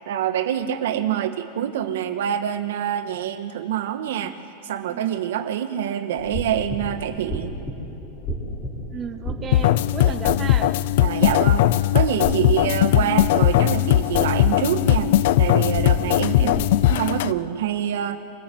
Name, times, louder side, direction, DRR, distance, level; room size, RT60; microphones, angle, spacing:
voice 1, 0.1-4.3 4.6-7.6 10.0-10.1 11.0-16.6 16.9-18.2, right 10 dB, 75° right, 9 dB, 1.6 m, -26 dB
sound 1, 6.2-17.0, equal, 10° left, 3.6 m, -33 dB
voice 2, 8.9-10.7 12.9-13.2 16.4-16.6, right 7 dB, 20° right, 7 dB, 0.7 m, -34 dB
sound 2, 9.5-17.3, left 14 dB, 60° left, 0.5 m, -19 dB
26.0 x 16.0 x 9.4 m, 2.6 s
supercardioid pair, 170°, 0 cm